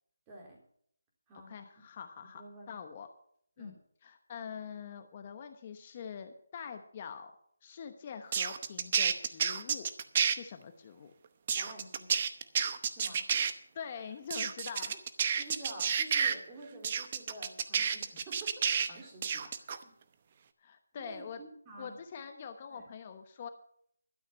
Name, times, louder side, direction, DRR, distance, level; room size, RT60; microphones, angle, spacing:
voice 1, 0.3-0.6 1.3-1.5 2.3-2.8 3.6-3.8 11.5-12.2 12.9-13.2 14.8-15.0 15.4-19.9 21.0-22.0 22.7-22.8, right 1 dB, 15° right, -1 dB, 3.5 m, -49 dB
voice 2, 1.5-3.1 3.6-3.8 4.0-7.3 7.6-9.9 10.2-11.1 13.7-14.9 20.6-21.4 21.8-23.5, left 7 dB, 30° left, 7 dB, 1.0 m, -44 dB
sound 1, 8.3-10.4 11.5-13.5 14.3-16.3 16.8-18.9 19.2-19.8, right 7 dB, 35° right, 0.8 m, -30 dB
12.5 x 9.2 x 5.8 m, 0.64 s
figure-of-eight pair, 165°, 0 cm